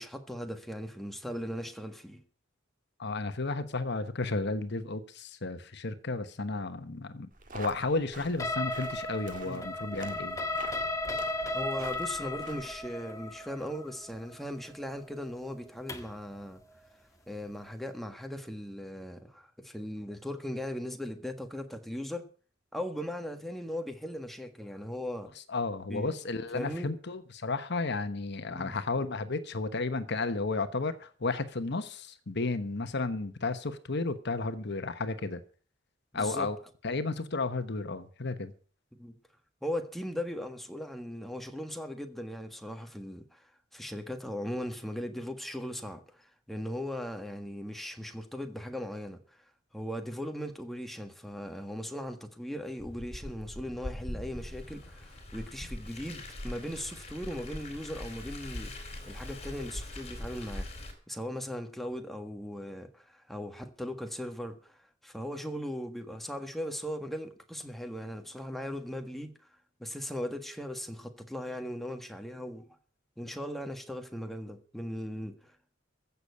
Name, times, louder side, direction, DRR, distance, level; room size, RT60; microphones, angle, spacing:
voice 1, 0.0-2.2 9.4-9.6 11.5-16.6 17.3-22.3 22.7-25.3 25.9-26.1 26.5-26.9 28.5-28.7 36.1-36.5 39.0-39.1 39.6-49.4 49.7-60.7 61.1-69.5 69.8-72.7 73.2-75.8, equal, ahead, 1.6 m, -38 dB
voice 2, 3.0-10.4 25.5-35.4 36.1-36.6 36.8-38.5, left 3 dB, 60° left, 1.1 m, -33 dB
sound 1, 7.3-12.9, right 4 dB, 45° right, 1.8 m, -49 dB
sound 2, 8.4-16.2, left 2 dB, 15° left, 1.6 m, -35 dB
Car, 52.8-60.9, left 1 dB, 35° left, 3.8 m, -42 dB
15.0 x 7.0 x 8.3 m
head